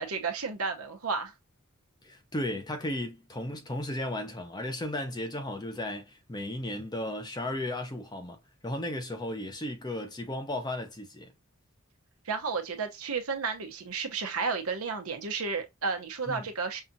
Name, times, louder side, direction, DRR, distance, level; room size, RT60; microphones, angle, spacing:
voice 1, 0.0-1.3 12.3-16.8, right 5 dB, 80° right, 0.9 m, -32 dB
voice 2, 2.0-8.4 8.6-11.3 16.3-16.5, left 1 dB, 20° left, 0.6 m, -35 dB
5.5 x 2.4 x 2.6 m
head